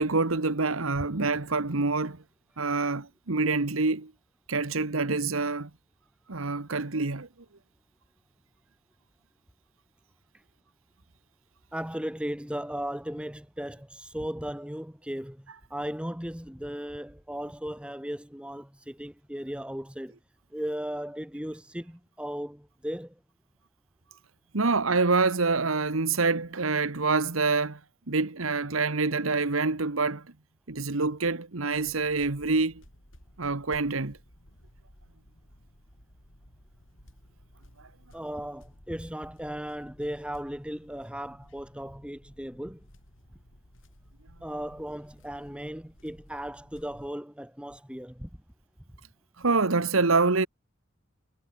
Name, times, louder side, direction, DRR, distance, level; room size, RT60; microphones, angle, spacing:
voice 1, 0.0-2.2 2.6-4.1 4.5-5.7 6.3-7.3 24.5-27.8 28.1-30.2 30.7-32.8 33.4-34.2 49.4-50.5, right 3 dB, 85° right, 1.5 m, -26 dB
voice 2, 11.7-20.1 20.5-23.2 38.1-42.9 44.4-48.3, equal, 5° right, 1.8 m, -36 dB
sound 1, 31.7-47.1, equal, 70° left, 7.8 m, -56 dB
head